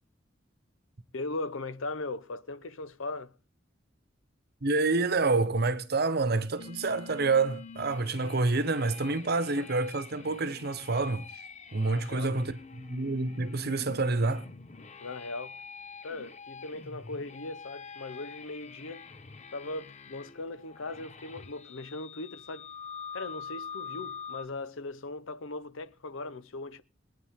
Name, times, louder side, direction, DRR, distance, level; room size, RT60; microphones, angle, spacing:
voice 1, 1.1-3.4 11.8-12.3 15.0-15.6 16.0-19.1 19.5-22.7 23.1-26.8, left 2 dB, 90° left, 0.8 m, -39 dB
voice 2, 4.6-11.4 11.7-14.5, right 3 dB, 55° right, 1.0 m, -28 dB
sound 1, 6.6-24.5, left 6 dB, 35° left, 0.9 m, -46 dB
21.0 x 9.3 x 3.6 m
head